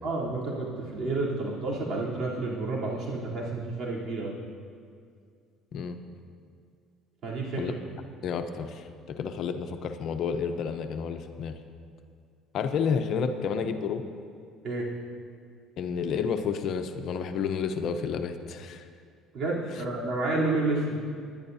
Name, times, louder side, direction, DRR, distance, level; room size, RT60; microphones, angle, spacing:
voice 1, 0.0-4.3 7.2-7.6 14.6-14.9 19.3-21.0, right 2 dB, 50° right, -5 dB, 3.5 m, -30 dB
voice 2, 8.2-11.5 12.5-14.0 15.8-18.9, left 6 dB, 60° left, 7 dB, 0.8 m, -30 dB
20.0 x 11.0 x 2.8 m, 2.3 s
cardioid pair, 105°, 0 cm